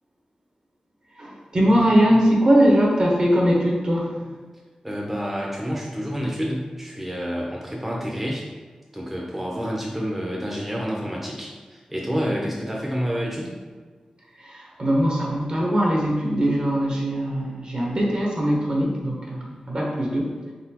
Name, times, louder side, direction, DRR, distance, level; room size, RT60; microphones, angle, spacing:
voice 1, 1.2-4.2 14.4-20.3, equal, 50° right, -2 dB, 1.0 m, -21 dB
voice 2, 4.8-8.4 8.9-13.5, equal, 10° right, -3 dB, 0.6 m, -28 dB
4.0 x 3.8 x 2.9 m, 1.4 s
wide cardioid pair, 95°, 2 cm